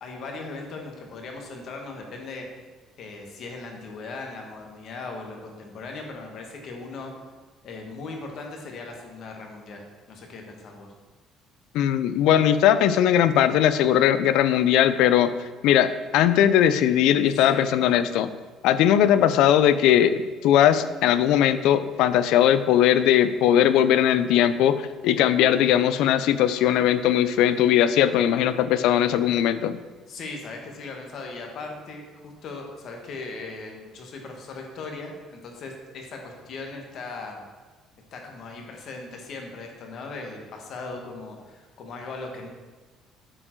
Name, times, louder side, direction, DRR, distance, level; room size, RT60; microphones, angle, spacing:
voice 1, 0.0-2.5 3.0-7.1 7.6-10.9 17.3-17.7 30.1-37.4 38.1-42.5, left 3 dB, 40° left, 2 dB, 1.2 m, -38 dB
voice 2, 11.7-15.3 15.6-18.3 18.6-29.8, left 10 dB, 70° left, 13 dB, 0.4 m, -19 dB
8.7 x 4.5 x 4.4 m, 1.3 s
cardioid pair, 180°, 0 cm